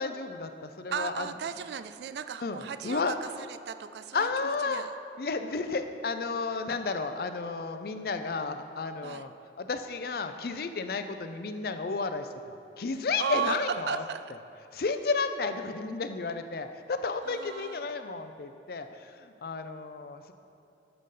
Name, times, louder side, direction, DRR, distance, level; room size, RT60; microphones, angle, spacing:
voice 1, 0.0-1.3 2.4-3.2 4.1-4.8 5.2-9.3 9.6-14.0 14.7-20.3, left 4 dB, 55° left, 9 dB, 0.5 m, -32 dB
voice 2, 0.9-4.9 9.0-9.2 13.2-13.6 13.9-14.2 17.2-17.9, right 7 dB, 70° right, 12 dB, 0.3 m, -35 dB
12.0 x 6.8 x 3.8 m, 2.7 s
head